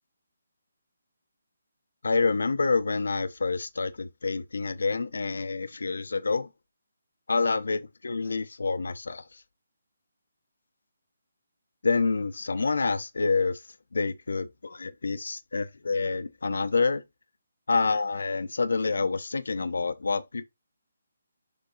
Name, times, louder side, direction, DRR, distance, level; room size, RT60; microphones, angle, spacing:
voice 1, 2.0-6.5 7.3-9.4 11.8-13.6 13.9-17.0 17.7-20.4, left 4 dB, 80° left, 0.8 m, -27 dB
7.0 x 3.6 x 3.8 m
hypercardioid pair, 160°, 0 cm